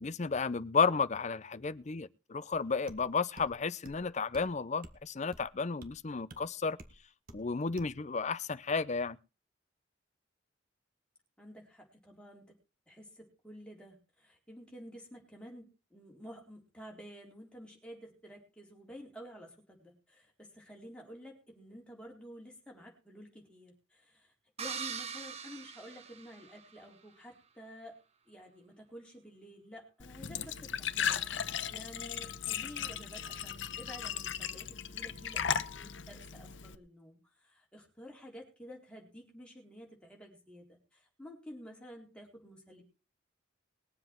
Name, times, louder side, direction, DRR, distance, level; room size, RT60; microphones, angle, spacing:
voice 1, 0.0-6.8 7.3-9.2, left 5 dB, 35° left, 0.6 m, -32 dB
sound 1, 2.9-3.0 3.4-3.5 3.9-4.1 4.3-4.5 4.8-5.0 5.3-5.5 5.8-5.9 6.3-6.4 6.8-7.0 7.3-7.4 7.8-8.0, right 1 dB, 50° right, 1.7 m, -50 dB
voice 2, 11.4-12.5 12.9-24.3 24.6-28.0 28.3-42.8, equal, 5° left, 4.0 m, -51 dB
sound 2, 24.6-26.8, right 7 dB, 35° right, 1.1 m, -42 dB
Glass / Trickle dribble / Fill (with liquid), 30.0-36.7, left 8 dB, 70° left, 0.9 m, -37 dB
21.0 x 7.7 x 4.5 m
head